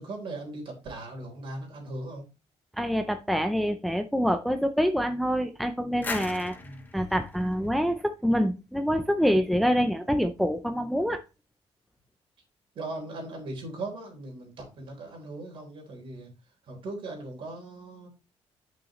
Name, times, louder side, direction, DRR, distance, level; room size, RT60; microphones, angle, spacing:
voice 1, 0.0-2.2 6.6-6.8 12.8-16.3 16.7-18.1, right 2 dB, 50° right, 1 dB, 3.5 m, -39 dB
voice 2, 2.7-6.5 6.9-11.2, equal, ahead, 7 dB, 0.4 m, -26 dB
sound 1, 6.0-8.7, left 3 dB, 15° left, 0.9 m, -39 dB
8.8 x 6.3 x 3.0 m, 0.28 s
cardioid pair, 175°, 11 cm